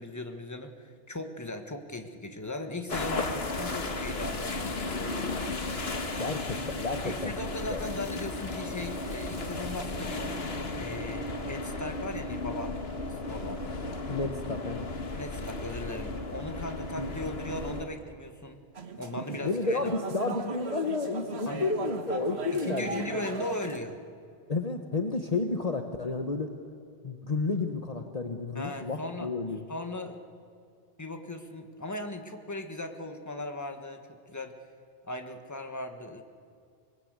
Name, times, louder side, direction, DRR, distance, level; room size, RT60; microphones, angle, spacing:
voice 1, 0.0-4.7 7.0-10.3 10.8-12.7 13.0-13.6 15.1-18.6 19.0-19.8 21.5-21.6 22.5-24.0 28.5-29.3 29.7-30.2 31.0-34.5 35.0-36.2, left 1 dB, 15° left, 5 dB, 1.6 m, -38 dB
sound 1, 2.9-17.8, left 2 dB, 75° left, 1.9 m, -35 dB
sound 2, 4.4-13.0, right 1 dB, 25° right, 8.1 m, -57 dB
voice 2, 6.2-7.3 7.7-7.8 14.1-14.9 16.9-17.1 19.4-23.2 24.5-26.5 27.0-29.6, left 3 dB, 40° left, 5 dB, 1.2 m, -31 dB
sound 3, 18.7-23.8, right 4 dB, 90° right, 1.6 m, -38 dB
24.5 x 21.0 x 8.2 m, 2.3 s
omnidirectional pair, 1.1 m